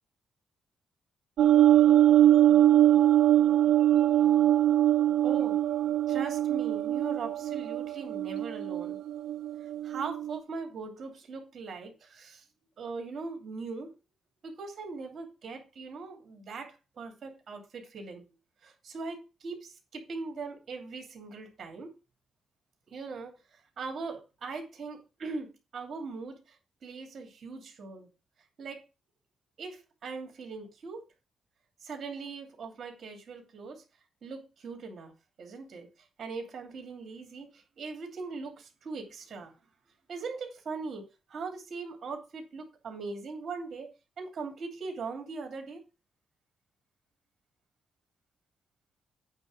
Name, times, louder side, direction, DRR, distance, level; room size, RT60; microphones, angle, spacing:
sound 1, 1.4-10.4, right 12 dB, 85° right, 0.3 m, -23 dB
voice 1, 5.2-5.6 6.1-9.0 9.8-12.4 12.8-13.9 14.4-18.2 18.6-21.9 22.9-23.3 23.8-26.4 26.8-28.1 28.6-28.8 29.6-31.0 31.8-33.8 34.2-35.1 35.4-35.9 36.2-37.5 37.8-39.5 40.1-43.9 44.2-45.8, right 4 dB, 45° right, 2.7 m, -40 dB
8.9 x 3.6 x 6.5 m
cardioid pair, 150°, 0 cm